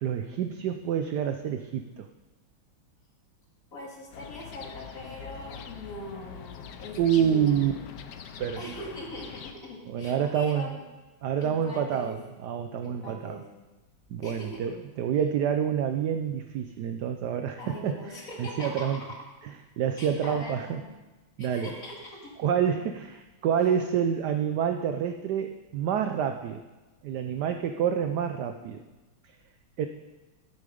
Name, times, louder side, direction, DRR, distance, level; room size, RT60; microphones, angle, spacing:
voice 1, 0.0-2.1 7.0-7.7 8.4-8.7 9.9-10.7 11.2-13.4 14.1-17.9 18.4-19.0 19.8-20.8 21.4-21.7 22.4-26.6 27.0-28.8 29.8-29.9, right 8 dB, 75° right, 7 dB, 0.9 m, -28 dB
voice 2, 3.7-7.8 8.6-10.8 11.4-12.2 12.8-13.5 14.2-14.6 17.6-19.2 20.0-21.0 21.4-22.4, left 1 dB, 40° left, -1 dB, 2.3 m, -41 dB
sound 1, 4.1-9.5, left 8 dB, 65° left, 1.1 m, -43 dB
12.0 x 8.5 x 5.0 m, 1.2 s
omnidirectional pair, 2.3 m